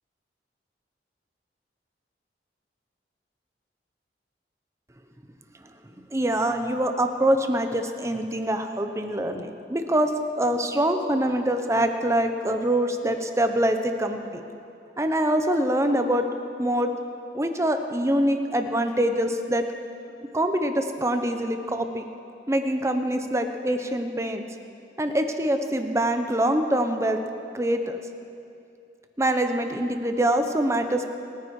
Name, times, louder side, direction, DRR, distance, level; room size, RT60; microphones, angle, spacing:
voice 1, 6.1-10.1 10.4-14.4 15.0-16.3 16.6-16.9 17.3-19.7 20.3-22.0 22.5-24.4 25.0-27.2 27.5-28.0 29.2-31.1, right 1 dB, 15° right, 6 dB, 0.8 m, -24 dB
27.0 x 9.6 x 4.8 m, 2.6 s
head